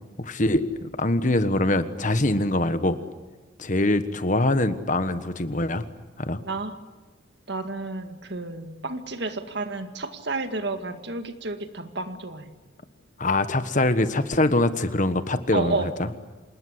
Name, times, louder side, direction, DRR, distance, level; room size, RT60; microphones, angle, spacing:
voice 1, 0.2-3.0 3.6-5.8 6.2-6.4 13.2-16.1, left 2 dB, 40° left, 11 dB, 1.4 m, -23 dB
voice 2, 7.5-12.5 15.5-15.9, right 3 dB, 60° right, 8 dB, 2.0 m, -31 dB
27.5 x 20.5 x 9.8 m, 1.3 s
head